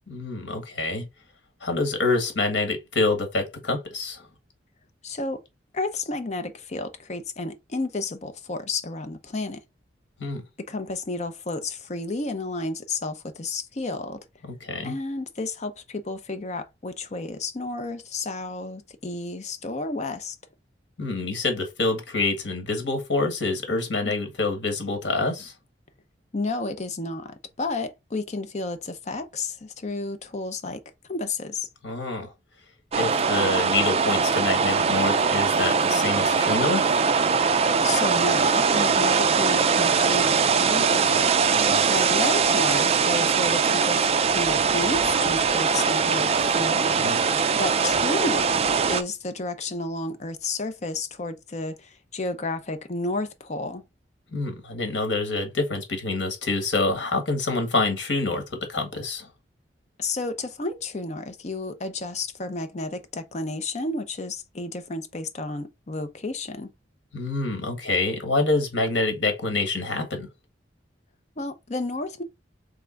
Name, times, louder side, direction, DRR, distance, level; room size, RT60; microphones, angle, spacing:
voice 1, 0.1-1.0 1.6-4.2 10.2-10.4 14.6-14.9 21.0-25.5 31.8-32.3 32.9-37.0 41.5-41.8 46.9-47.2 54.3-59.3 67.1-70.3, left 3 dB, 75° left, 1.6 m, -26 dB
voice 2, 5.0-5.4 5.7-9.6 10.6-14.2 14.8-20.4 24.0-24.1 26.3-30.8 31.1-31.7 37.5-41.4 41.9-44.1 44.3-46.9 47.6-53.8 60.0-66.7 71.4-72.2, left 2 dB, 40° left, 0.7 m, -31 dB
sound 1, 32.9-49.0, right 5 dB, 35° right, 0.4 m, -21 dB
3.6 x 3.4 x 3.8 m
head